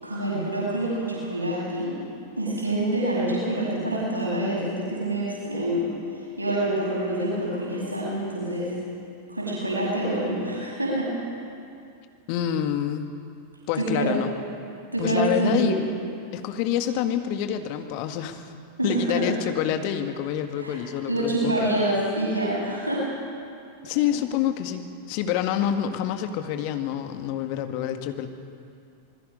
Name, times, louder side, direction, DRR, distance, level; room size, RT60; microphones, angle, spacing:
voice 1, 0.0-2.0 2.4-8.8 9.3-11.2 13.7-14.2 14.9-15.8 18.8-19.3 20.6-20.8 21.1-23.1, right 1 dB, 85° right, -4 dB, 6.6 m, -26 dB
voice 2, 12.3-13.1 13.7-14.3 15.0-15.9 16.3-18.4 18.8-21.5 23.8-28.3, left 10 dB, 45° left, 7 dB, 1.9 m, -27 dB
26.5 x 20.5 x 5.4 m, 2.5 s
figure-of-eight pair, 90°, 0 cm